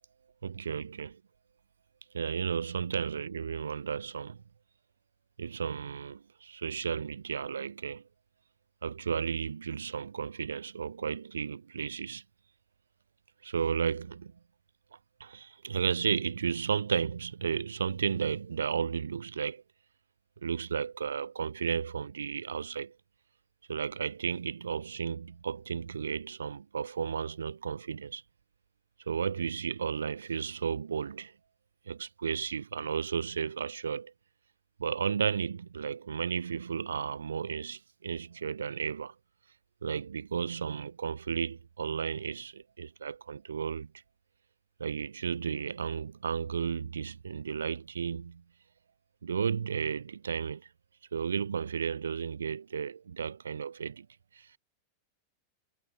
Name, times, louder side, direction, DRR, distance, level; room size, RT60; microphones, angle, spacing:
voice 1, 0.4-1.2 2.1-4.4 5.4-8.0 8.8-12.2 13.4-14.3 15.2-19.6 20.4-23.0 23.7-28.2 29.1-31.3 31.9-34.1 34.8-39.1 39.8-43.9 44.8-48.4 49.2-50.7 51.1-54.1 54.3-54.5, right 7 dB, 70° right, 0.4 m, -33 dB
figure-of-eight pair, 90°, 0 cm